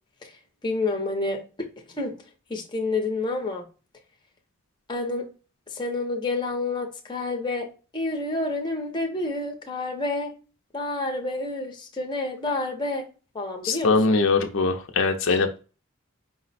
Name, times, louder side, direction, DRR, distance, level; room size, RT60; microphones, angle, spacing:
voice 1, 0.6-1.4 1.9-2.2 2.5-3.6 4.9-5.3 5.7-10.3 10.7-13.0 13.3-14.2, left 2 dB, 20° left, 0.6 m, -29 dB
voice 2, 13.6-15.6, left 3 dB, 65° left, 0.5 m, -22 dB
4.9 x 2.1 x 4.0 m
head